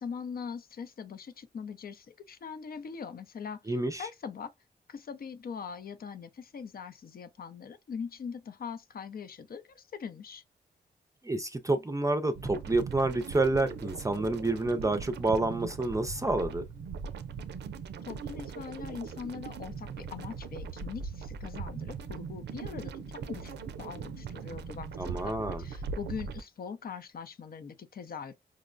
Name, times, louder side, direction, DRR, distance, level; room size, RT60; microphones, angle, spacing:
voice 1, 0.0-3.6 4.0-4.5 4.9-10.4 18.1-22.9 23.3-28.3, left 6 dB, 60° left, 0.6 m, -41 dB
voice 2, 3.7-4.1 11.2-16.6 25.0-25.6, right 2 dB, 20° right, 0.5 m, -29 dB
sound 1, 12.3-26.4, right 5 dB, 85° right, 0.4 m, -40 dB
5.0 x 2.1 x 2.5 m
cardioid pair, 60°, 17 cm